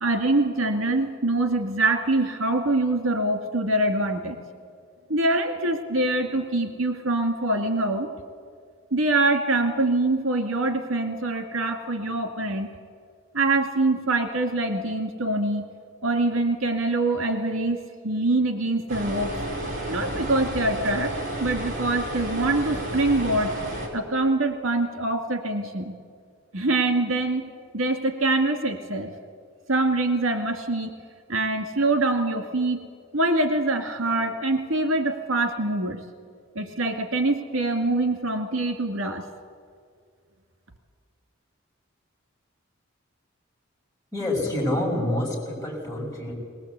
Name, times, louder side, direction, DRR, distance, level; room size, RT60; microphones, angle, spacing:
voice 1, 0.0-4.4 5.1-8.1 8.9-12.7 13.3-15.7 16.0-17.8 18.0-19.4 19.9-21.1 21.4-23.5 23.9-25.9 26.5-27.5 27.7-29.1 29.7-31.0 31.3-32.8 33.1-36.0 36.6-39.3, right 2 dB, 85° right, 5 dB, 2.2 m, -24 dB
sound 1, 18.9-23.9, right 1 dB, 40° right, 4.8 m, -31 dB
voice 2, 44.1-46.3, left 1 dB, 15° left, -1 dB, 6.3 m, -27 dB
21.0 x 20.0 x 8.3 m, 2.1 s
head